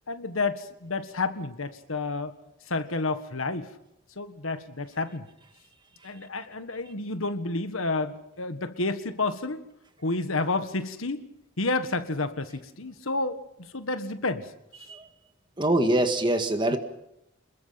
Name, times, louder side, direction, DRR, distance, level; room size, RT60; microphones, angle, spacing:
voice 1, 0.1-2.3 2.7-3.7 4.2-5.3 6.0-9.6 10.0-11.2 11.6-13.4 13.7-14.5 16.7-16.8, left 3 dB, 80° left, 10 dB, 1.6 m, -30 dB
voice 2, 15.6-16.8, right 1 dB, 25° right, 7 dB, 1.8 m, -23 dB
27.0 x 21.5 x 5.8 m, 0.82 s
head